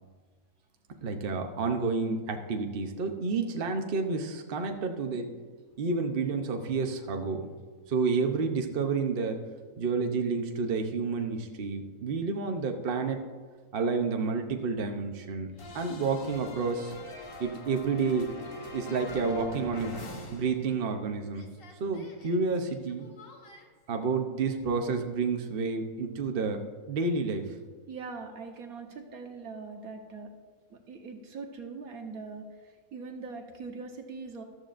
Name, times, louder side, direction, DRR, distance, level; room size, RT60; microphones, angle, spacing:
voice 1, 1.0-5.3 5.8-7.5 7.9-9.4 9.8-13.2 13.7-16.9 17.4-18.3 18.7-19.9 20.3-21.5 21.8-23.1 23.9-26.6 26.9-27.4, right 4 dB, 45° right, 4 dB, 0.9 m, -30 dB
sound 1, 15.6-21.0 21.3-23.6, left 2 dB, 45° left, 1.2 m, -44 dB
voice 2, 27.9-30.3 30.7-34.4, right 4 dB, 80° right, 3 dB, 1.6 m, -42 dB
14.0 x 12.5 x 2.5 m, 1.5 s
omnidirectional pair, 1.5 m